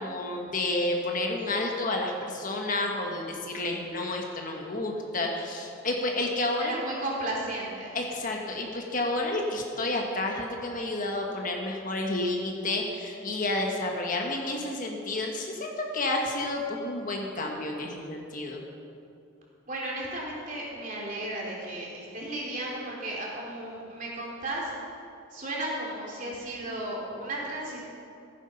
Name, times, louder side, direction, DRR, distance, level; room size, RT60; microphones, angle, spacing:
voice 1, 0.0-6.7 7.9-18.6, left 2 dB, 40° left, 1 dB, 1.3 m, -30 dB
voice 2, 6.6-8.0 19.7-24.7 25.3-27.8, right 1 dB, 40° right, -4 dB, 3.2 m, -34 dB
15.5 x 9.1 x 5.7 m, 2.6 s
head